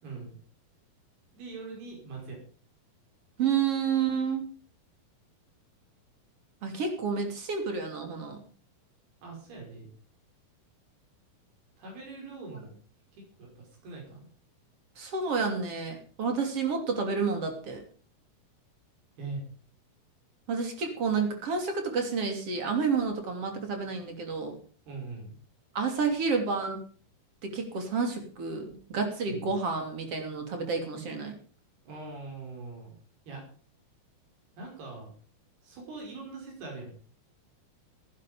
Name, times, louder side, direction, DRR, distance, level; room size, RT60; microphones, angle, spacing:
voice 1, 0.0-0.4 1.3-2.4 9.2-9.9 11.8-12.8 13.1-14.3 19.2-19.4 24.9-25.4 29.3-29.5 31.9-32.9 33.3-33.4 34.6-35.1 35.6-36.9, right 3 dB, 80° right, 0 dB, 7.4 m, -42 dB
voice 2, 3.4-4.4 6.6-8.4 15.0-17.8 20.5-24.5 25.8-26.8 27.4-31.3, right 5 dB, 40° right, 4 dB, 3.6 m, -30 dB
16.5 x 11.0 x 5.2 m, 0.43 s
omnidirectional pair, 4.5 m